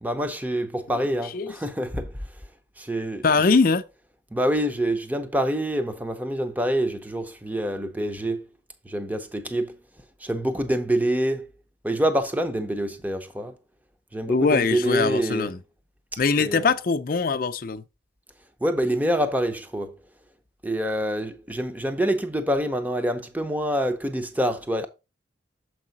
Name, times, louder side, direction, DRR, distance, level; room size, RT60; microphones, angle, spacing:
voice 1, 0.0-2.1 2.8-3.2 4.3-8.4 8.8-9.8 10.2-11.5 11.8-13.6 14.1-15.5 16.1-16.6 18.6-19.9 20.6-24.9, right 1 dB, 10° right, 0.6 m, -26 dB
voice 2, 3.2-3.8 14.3-15.6 16.2-17.8, left 4 dB, 45° left, 0.5 m, -22 dB
7.1 x 4.7 x 4.0 m
head